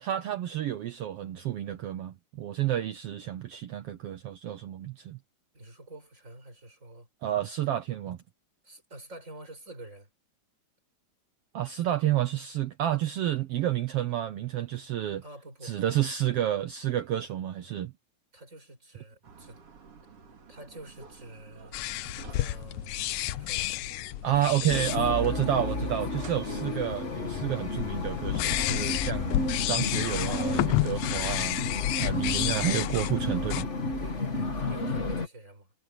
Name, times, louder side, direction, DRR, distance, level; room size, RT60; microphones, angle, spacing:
voice 1, 0.0-5.2 7.2-8.2 11.5-15.2 15.6-17.9 24.2-29.4 29.7-31.6 32.0-33.7, right 12 dB, 70° right, 1.5 m, -30 dB
voice 2, 5.5-7.1 8.6-10.1 15.2-15.8 18.3-19.6 20.5-21.8 22.3-23.7 24.2-26.3 34.0-35.7, right 2 dB, 25° right, 6.5 m, -47 dB
sound 1, 19.2-32.8, right 5 dB, 50° right, 3.5 m, -50 dB
sound 2, 21.7-33.6, left 17 dB, 80° left, 1.9 m, -32 dB
sound 3, 24.7-35.3, left 2 dB, 25° left, 2.0 m, -32 dB
omnidirectional pair, 3.4 m